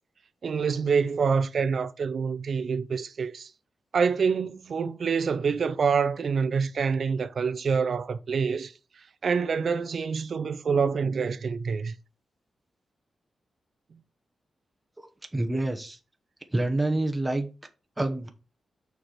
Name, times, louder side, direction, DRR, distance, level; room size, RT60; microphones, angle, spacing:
voice 1, 0.4-3.5 3.9-8.7 9.2-11.9, right 5 dB, 55° right, 0.5 m, -26 dB
voice 2, 15.3-16.0 16.5-17.5 18.0-18.3, right 2 dB, 10° right, 1.0 m, -27 dB
6.3 x 4.7 x 5.0 m
wide cardioid pair, 150°, 0 cm